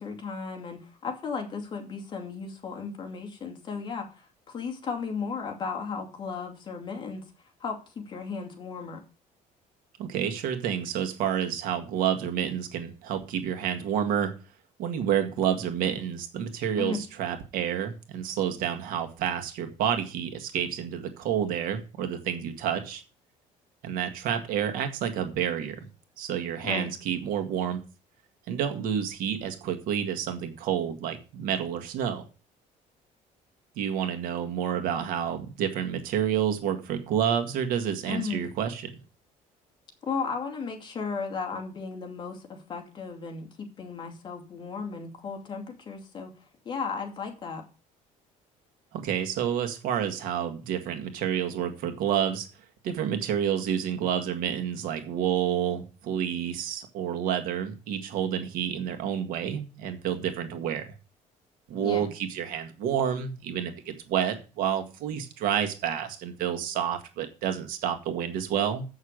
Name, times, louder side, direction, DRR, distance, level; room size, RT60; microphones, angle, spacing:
voice 1, 0.0-7.2 7.6-9.0 16.8-17.0 26.7-26.9 38.1-38.4 40.0-46.3 46.6-47.6 61.8-62.1, left 5 dB, 30° left, 2 dB, 2.4 m, -35 dB
voice 2, 10.0-14.3 14.8-23.0 23.8-25.9 26.2-27.8 28.5-32.3 33.8-38.9 48.9-52.5 52.8-60.9 61.7-68.8, right 9 dB, 80° right, 6 dB, 1.8 m, -29 dB
8.2 x 6.5 x 6.4 m, 0.32 s
cardioid pair, 160°, 14 cm